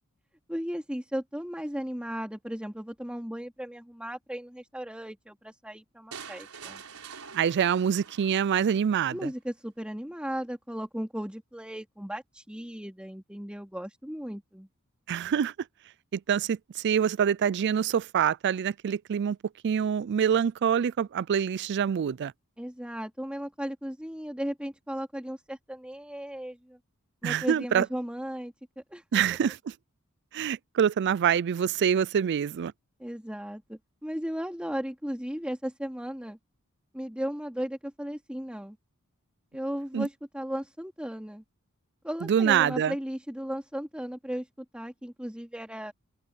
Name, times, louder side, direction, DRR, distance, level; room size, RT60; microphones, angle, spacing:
voice 1, 0.5-6.8 9.1-14.7 22.6-26.8 27.2-29.0 33.0-36.4 36.9-38.8 39.5-41.4 42.0-44.5 44.7-45.9, equal, 5° right, 2.6 m, -36 dB
sound 1, 6.1-9.1, right 6 dB, 75° right, 5.0 m, -46 dB
voice 2, 7.3-9.3 15.1-15.5 16.1-19.4 19.6-22.3 27.2-27.9 29.1-29.7 30.3-32.7 39.9-40.1 42.2-42.9, right 8 dB, 55° right, 0.3 m, -25 dB
open air
head